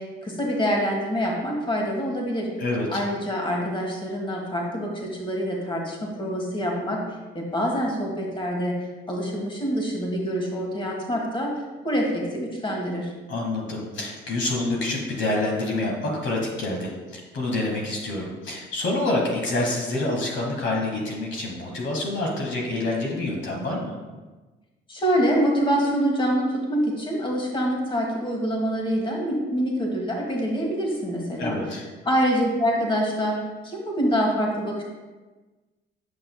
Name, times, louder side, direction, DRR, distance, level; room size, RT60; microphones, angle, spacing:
voice 1, 0.0-2.5 2.9-7.0 7.3-8.7 9.1-11.5 11.8-13.1 24.9-31.6 32.0-33.4 33.6-34.8, equal, 25° left, -1 dB, 1.6 m, -25 dB
voice 2, 2.6-3.0 13.3-24.0 31.4-31.8, left 2 dB, 70° left, -1 dB, 1.2 m, -27 dB
7.5 x 5.8 x 2.2 m, 1.2 s
cardioid pair, 90°, 20 cm